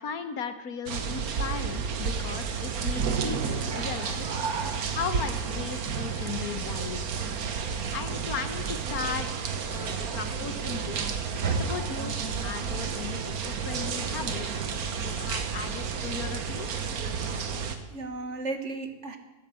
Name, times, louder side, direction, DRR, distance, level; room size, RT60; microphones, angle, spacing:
voice 1, 0.0-4.3 4.9-7.0 7.9-9.3 9.7-11.1 11.4-14.6 15.0-16.7, left 6 dB, 70° left, 10 dB, 1.5 m, -36 dB
sound 1, 0.9-17.8, right 6 dB, 70° right, 1.6 m, -31 dB
voice 2, 3.7-5.0 17.9-19.2, right 4 dB, 50° right, 7 dB, 1.5 m, -35 dB
14.5 x 10.0 x 7.7 m, 1.1 s
omnidirectional pair, 1.6 m